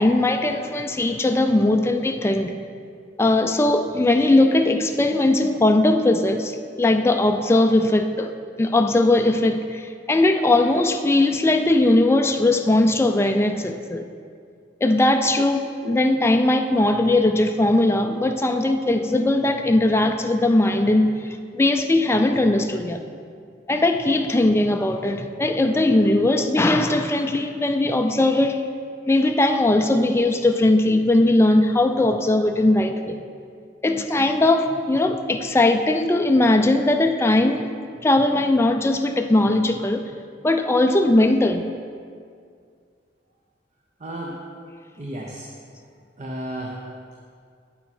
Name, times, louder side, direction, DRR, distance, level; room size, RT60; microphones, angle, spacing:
voice 1, 0.0-2.5 3.2-8.3 8.6-14.0 14.8-21.1 21.5-23.0 23.7-28.6 29.1-33.2 33.8-37.7 38.0-40.0 40.4-41.6, left 2 dB, 15° left, 5 dB, 0.4 m, -19 dB
voice 2, 44.0-44.4 45.0-45.5 46.2-46.8, right 1 dB, 40° right, -2 dB, 0.9 m, -32 dB
8.9 x 8.9 x 4.3 m, 2.2 s
head